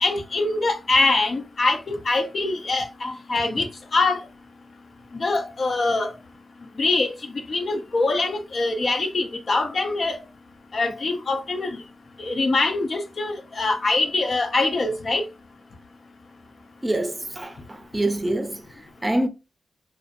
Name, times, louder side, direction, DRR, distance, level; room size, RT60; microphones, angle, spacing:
voice 1, 0.0-3.7 3.9-4.2 5.1-6.1 6.8-7.1 7.5-10.2 10.7-11.8 12.2-15.2, left 3 dB, 60° left, 0.6 m, -23 dB
voice 2, 16.8-18.7 19.0-19.3, right 1 dB, 25° right, 0.5 m, -25 dB
2.5 x 2.1 x 2.7 m
cardioid pair, 50°, 0 cm